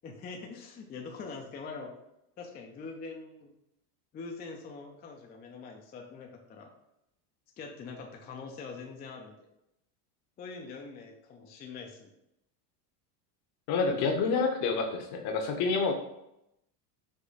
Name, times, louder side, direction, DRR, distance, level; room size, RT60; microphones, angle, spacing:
voice 1, 0.0-1.9 2.4-3.5 4.1-6.7 7.6-9.4 10.4-12.1, left 4 dB, 20° left, 1 dB, 0.4 m, -43 dB
voice 2, 13.7-15.9, left 4 dB, 55° left, 4 dB, 0.9 m, -28 dB
4.9 x 2.2 x 4.0 m, 0.83 s
supercardioid pair, 120°, 47 cm